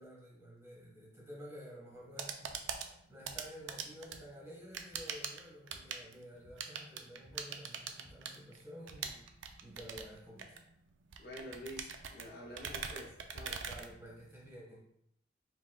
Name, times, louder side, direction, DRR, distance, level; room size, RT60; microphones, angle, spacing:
voice 1, 0.0-9.2 9.6-10.6 13.6-14.9, equal, 15° right, -5 dB, 1.5 m, -51 dB
sound 1, 1.9-14.5, right 6 dB, 85° right, 0.5 m, -44 dB
sound 2, 2.5-9.9, equal, 5° left, 1.7 m, -64 dB
voice 2, 11.2-13.6, equal, 55° left, -1 dB, 1.0 m, -48 dB
5.2 x 4.1 x 2.3 m, 0.75 s
head